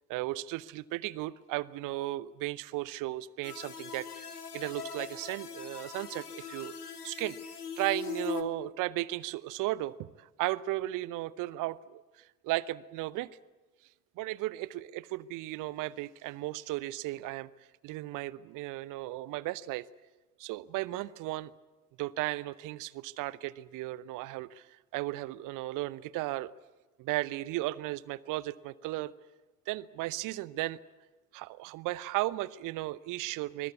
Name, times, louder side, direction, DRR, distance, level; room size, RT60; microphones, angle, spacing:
voice 1, 0.1-4.3 4.5-6.7 7.0-7.4 7.8-13.3 14.2-17.5 17.8-19.9 20.4-21.5 22.0-24.7 24.9-26.5 27.0-29.1 29.7-30.8 31.3-33.7, right 17 dB, 45° right, 20 dB, 0.9 m, -35 dB
sound 1, 3.4-8.4, left 6 dB, 85° left, 1.3 m, -41 dB
25.5 x 21.5 x 8.4 m, 1.2 s
figure-of-eight pair, 65°, 45 cm